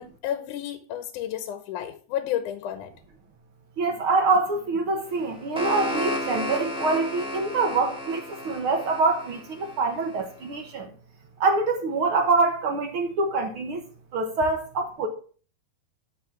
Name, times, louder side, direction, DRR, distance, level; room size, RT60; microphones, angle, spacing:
voice 1, 0.0-2.9, left 11 dB, 70° left, 2.2 m, -31 dB
voice 2, 3.8-10.9 11.4-13.8 14.1-15.1, right 3 dB, 70° right, 1.2 m, -25 dB
sound 1, 5.1-10.2, left 1 dB, 5° right, 0.8 m, -33 dB
12.0 x 4.1 x 6.1 m
omnidirectional pair, 4.2 m